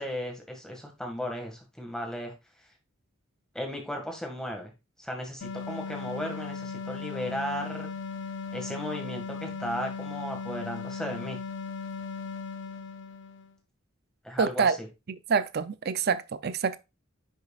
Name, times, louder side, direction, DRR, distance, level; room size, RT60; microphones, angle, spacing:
voice 1, 0.0-2.3 3.5-4.7 5.0-7.9 8.5-11.4 14.2-14.9, equal, 5° left, 1.9 m, -35 dB
sound 1, 5.4-13.5, left 5 dB, 60° left, 0.6 m, -37 dB
voice 2, 14.4-14.8 15.1-16.8, right 5 dB, 50° right, 0.5 m, -27 dB
10.0 x 6.4 x 2.4 m
head